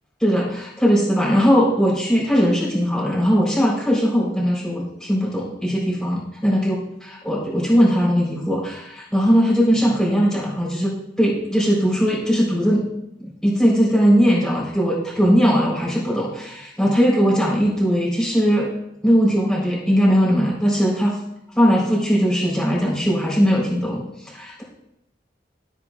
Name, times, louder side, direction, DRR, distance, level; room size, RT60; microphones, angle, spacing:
voice 1, 0.2-6.7 7.1-12.9 13.2-18.7 19.0-21.2 21.5-24.6, equal, 5° left, -5 dB, 3.9 m, -19 dB
14.5 x 8.3 x 2.4 m, 0.82 s
head